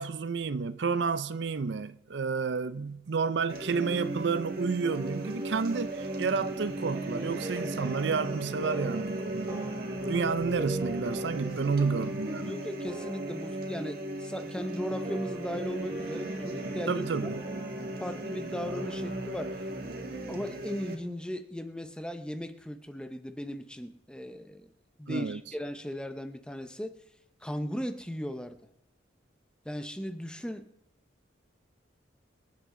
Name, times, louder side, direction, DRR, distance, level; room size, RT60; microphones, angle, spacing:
voice 1, 0.0-9.7 10.1-12.6 16.9-17.4 25.1-25.4, right 5 dB, 70° right, 0.5 m, -30 dB
sound 1, 3.5-20.9, right 1 dB, 50° right, 1.8 m, -36 dB
sound 2, 4.8-18.1, right 1 dB, 20° right, 2.6 m, -43 dB
voice 2, 11.4-11.8 12.4-17.1 18.0-19.6 20.3-24.7 25.0-26.9 27.4-28.6 29.7-30.7, equal, 5° left, 0.7 m, -37 dB
25.5 x 8.6 x 3.8 m
head